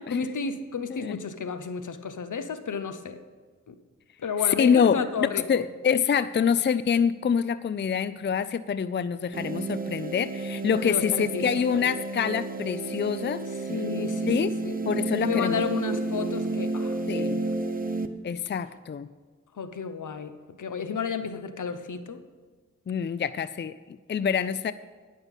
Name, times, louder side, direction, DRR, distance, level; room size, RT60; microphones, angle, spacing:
voice 1, 0.1-3.2 3.7-3.8 4.2-5.6 10.8-11.8 13.7-14.8 15.2-17.8 19.5-22.2, left 6 dB, 75° left, 10 dB, 0.9 m, -32 dB
voice 2, 4.6-13.4 14.3-14.5 14.9-15.6 17.1-17.4 18.2-19.1 22.9-24.7, left 7 dB, 35° left, 14 dB, 0.4 m, -26 dB
sound 1, 9.3-18.1, right 3 dB, 30° right, 0.8 m, -31 dB
9.9 x 6.6 x 8.2 m, 1.4 s
cardioid pair, 40°, 31 cm